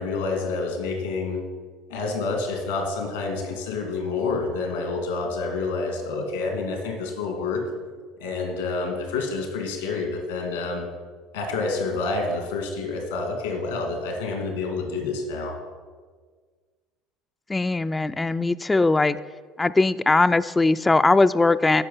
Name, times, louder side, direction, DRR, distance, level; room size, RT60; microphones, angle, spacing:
voice 1, 0.0-1.4 1.9-7.6 8.2-10.9 11.3-15.6, left 3 dB, 90° left, 2 dB, 2.0 m, -28 dB
voice 2, 17.5-19.2 19.6-21.8, left 3 dB, 15° left, 12 dB, 0.3 m, -20 dB
15.0 x 5.2 x 5.5 m, 1.5 s
hypercardioid pair, 75°, 0 cm